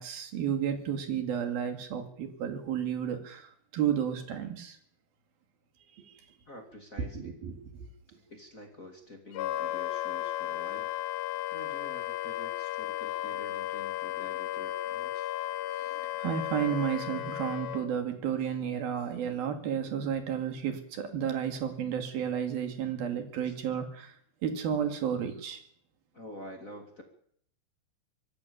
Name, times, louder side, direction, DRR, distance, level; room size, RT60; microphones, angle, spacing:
voice 1, 0.0-4.8 5.9-6.2 7.0-7.9 15.8-24.1 24.4-25.6, right 8 dB, 55° right, 6 dB, 3.7 m, -32 dB
voice 2, 6.5-7.3 8.3-10.9 11.5-15.3 23.4-23.5 26.1-27.0, left 1 dB, 30° left, 3 dB, 1.5 m, -48 dB
Wind instrument woodwind instrument, 9.3-17.9, left 13 dB, 70° left, 2.4 m, -34 dB
24.0 x 15.0 x 7.1 m, 0.63 s
omnidirectional pair, 5.6 m